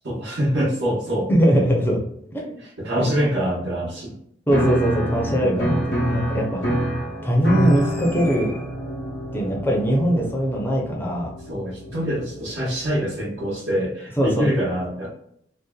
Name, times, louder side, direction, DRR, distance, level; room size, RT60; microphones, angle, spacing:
voice 1, 0.0-1.7 2.6-4.2 5.3-5.7 11.5-15.1, equal, 80° right, -8 dB, 0.9 m, -25 dB
voice 2, 1.3-2.0 2.3-2.6 3.0-3.1 4.5-5.8 6.1-6.6 7.2-8.6 9.3-11.3 14.2-14.5, equal, 10° left, -1 dB, 0.5 m, -21 dB
Piano, 4.5-13.0, right 1 dB, 75° left, 0.7 m, -27 dB
2.6 x 2.1 x 2.3 m, 0.70 s
head